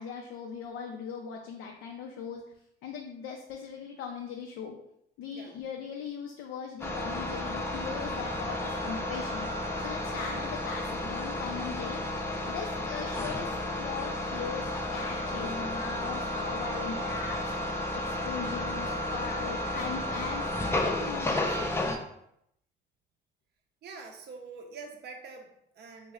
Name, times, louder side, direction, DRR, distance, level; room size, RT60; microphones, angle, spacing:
voice 1, 0.0-2.4 2.8-4.7 5.2-9.5 9.8-12.0 12.5-17.4 17.9-21.7, left 6 dB, 90° left, 1 dB, 0.4 m, -39 dB
sound 1, 6.8-22.0, left 1 dB, 10° left, 0.5 m, -32 dB
voice 2, 23.8-26.1, right 4 dB, 55° right, 3 dB, 0.5 m, -45 dB
3.0 x 2.0 x 3.6 m, 0.75 s
cardioid pair, 90°, 20 cm